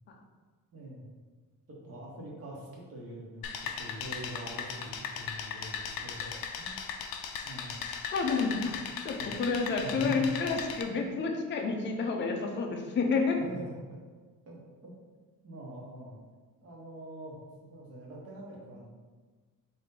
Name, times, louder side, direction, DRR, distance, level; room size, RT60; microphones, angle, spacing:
voice 1, 0.7-1.0 1.8-6.8 7.4-7.8 9.2-10.3 10.9-11.1 13.4-13.7 14.5-14.9 15.4-16.2 16.6-18.8, right 1 dB, 40° right, -3 dB, 1.0 m, -44 dB
sound 1, 3.4-10.8, left 6 dB, 90° left, 0.5 m, -38 dB
voice 2, 8.1-13.4, left 4 dB, 35° left, 2 dB, 0.5 m, -30 dB
4.8 x 2.7 x 3.7 m, 1.4 s
cardioid pair, 175°, 35 cm